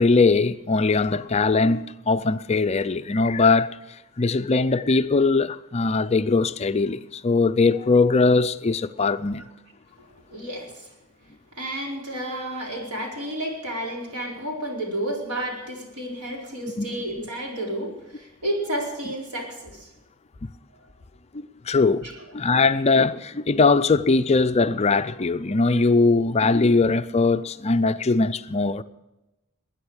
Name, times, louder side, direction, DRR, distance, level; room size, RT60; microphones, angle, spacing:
voice 1, 0.0-3.7 4.2-9.5 16.8-17.0 21.3-22.1 22.3-28.8, left 3 dB, 30° left, 0.5 m, -21 dB
voice 2, 10.0-10.9 11.5-19.9, right 1 dB, 90° right, 4.6 m, -31 dB
20.5 x 9.7 x 6.4 m
head